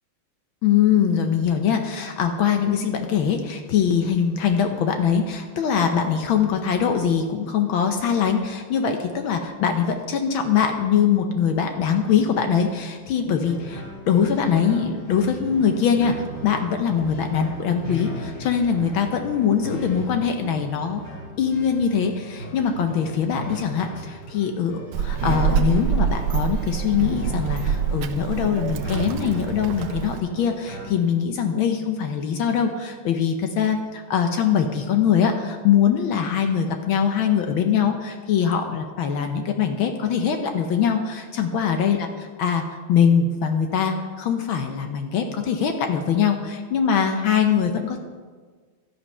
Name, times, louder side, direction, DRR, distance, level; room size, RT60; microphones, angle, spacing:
voice 1, 0.6-16.1 16.4-21.0 21.4-42.1 42.4-48.0, left 7 dB, 75° left, 5 dB, 1.6 m, -22 dB
sound 1, 13.4-30.9, equal, 45° left, 4.7 m, -36 dB
Child speech kid speaking, 24.9-30.2, right 8 dB, 80° right, 1.5 m, -25 dB
12.5 x 8.7 x 5.5 m, 1.5 s
omnidirectional pair, 2.3 m